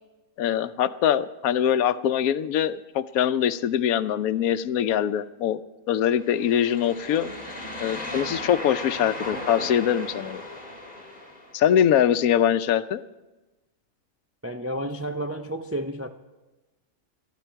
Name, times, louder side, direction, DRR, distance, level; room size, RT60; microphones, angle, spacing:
voice 1, 0.4-5.6 5.9-7.3 7.8-10.4 11.5-13.0, left 9 dB, 90° left, 13 dB, 1.1 m, -23 dB
sound 1, 6.1-11.6, left 1 dB, 35° left, 3.0 m, -36 dB
voice 2, 14.4-16.1, right 1 dB, 20° right, 5 dB, 0.4 m, -31 dB
21.5 x 13.0 x 4.6 m, 1.1 s
omnidirectional pair, 1.5 m